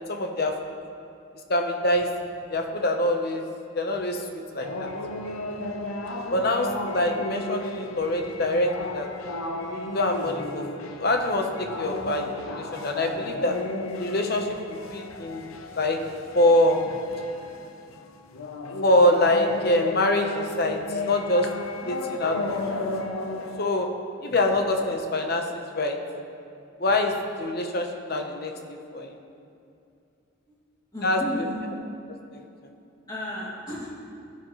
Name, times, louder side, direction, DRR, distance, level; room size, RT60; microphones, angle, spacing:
voice 1, 0.1-0.5 1.5-2.1 2.5-3.4 3.7-4.2 4.5-4.9 6.3-9.1 9.7-10.6 11.0-11.4 11.8-13.5 14.0-15.5 15.7-16.0 16.3-16.8 18.8-21.5 21.9-22.6 23.6-23.9 24.2-26.0 26.8-29.2 31.0-31.2 32.3-32.5, left 1 dB, 50° left, 4 dB, 1.0 m, -24 dB
sound 1, 4.6-23.7, left 2 dB, 85° left, 0.8 m, -34 dB
voice 2, 22.6-23.0 30.5-30.6 30.9-31.8 33.1-33.9, equal, 20° left, -6 dB, 2.5 m, -35 dB
15.5 x 10.0 x 3.2 m, 2.6 s
head